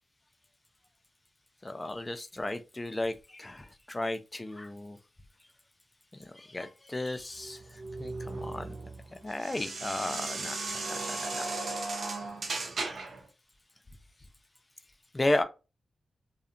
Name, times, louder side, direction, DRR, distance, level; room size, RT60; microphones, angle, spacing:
voice 1, 1.6-5.0 6.3-7.6 8.0-8.7 9.2-11.5 15.1-15.4, left 1 dB, 25° left, 0.4 m, -34 dB
sound 1, 7.4-13.2, right 3 dB, 70° right, 0.5 m, -36 dB
2.7 x 2.1 x 2.4 m
cardioid pair, 45°, 0 cm